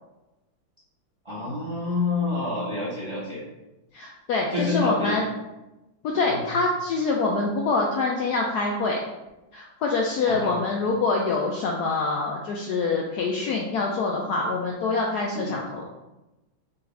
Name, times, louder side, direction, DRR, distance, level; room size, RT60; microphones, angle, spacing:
voice 1, 1.2-3.4 4.5-5.2 6.3-6.4 10.3-10.5 15.3-15.6, left 3 dB, 30° right, -8 dB, 0.6 m, -28 dB
voice 2, 3.9-5.2 6.0-9.0 9.5-15.9, left 3 dB, 75° left, 0 dB, 0.9 m, -25 dB
5.7 x 2.5 x 3.3 m, 1.0 s
omnidirectional pair, 2.2 m